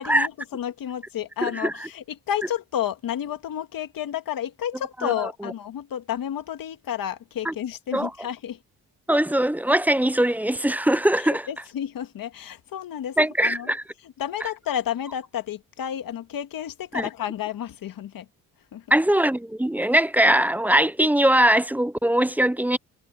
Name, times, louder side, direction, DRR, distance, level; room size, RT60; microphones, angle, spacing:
voice 1, 0.0-8.6 11.2-13.7 14.0-18.3 18.7-18.9, left 10 dB, 70° left, 1.9 m, -31 dB
voice 2, 1.4-1.7 5.0-5.1 7.5-7.6 7.9-8.1 9.1-11.5 13.2-13.8 16.9-17.1 18.9-22.8, right 1 dB, 5° right, 0.5 m, -21 dB
cardioid pair, 70°, 36 cm